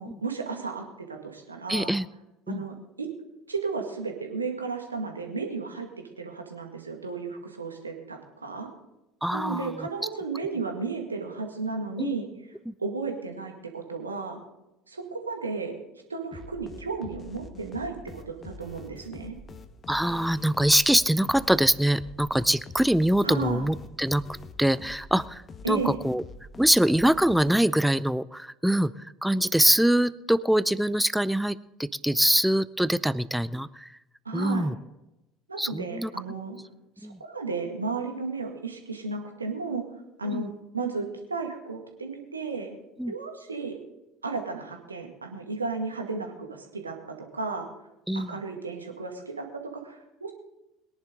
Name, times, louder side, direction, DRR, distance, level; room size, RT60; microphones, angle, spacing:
voice 1, 0.0-1.9 2.5-3.1 3.5-5.9 6.2-8.7 9.3-12.3 12.8-14.4 14.9-15.7 16.1-19.4 23.2-23.7 25.6-26.0 34.3-34.7 35.5-36.6 37.0-39.8 40.2-42.8 43.1-43.7 44.2-47.7 48.1-49.5 49.7-50.3, right 4 dB, 85° right, 3 dB, 1.9 m, -34 dB
voice 2, 1.7-2.1 2.5-2.6 9.2-9.7 12.0-12.2 12.7-12.8 19.9-24.2 24.6-25.4 25.7-26.2 26.6-28.9 29.2-33.9 34.3-34.8 35.6-36.1 37.0-37.2 40.3-40.5 43.0-43.1 48.1-48.4, right 1 dB, 5° right, 17 dB, 0.5 m, -24 dB
sound 1, 16.3-27.9, left 3 dB, 30° left, 1.2 m, -45 dB
21.5 x 10.5 x 3.9 m, 0.93 s
figure-of-eight pair, 65°, 0 cm